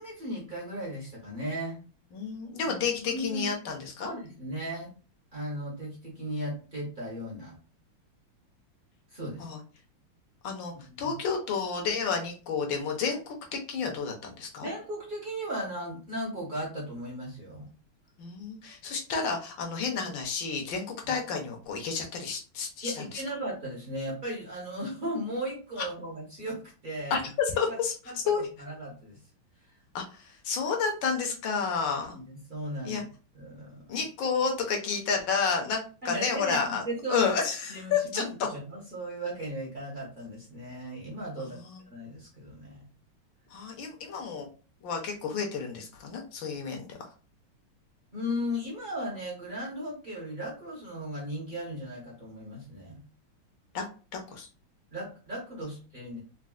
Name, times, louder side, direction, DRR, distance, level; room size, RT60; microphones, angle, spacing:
voice 1, 0.0-1.8 2.7-2.8 3.1-3.5 4.0-4.9 5.3-7.5 9.1-9.5 10.7-11.2 14.6-17.7 21.0-21.1 22.8-27.3 28.1-29.2 32.1-33.0 33.3-33.8 36.0-37.3 37.7-41.6 41.9-42.8 48.1-53.0 54.9-56.2, equal, 45° right, -4 dB, 0.6 m, -36 dB
voice 2, 2.1-4.1 9.4-9.6 10.4-10.7 11.0-14.7 18.2-23.2 27.1-27.9 28.3-28.4 29.9-32.2 32.8-33.0 33.9-36.8 37.1-38.2 41.6-41.8 43.5-44.5 44.8-47.0 53.7-53.8 54.1-54.5, left 5 dB, 70° left, 2 dB, 1.3 m, -30 dB
4.1 x 2.0 x 2.3 m, 0.36 s
omnidirectional pair, 2.4 m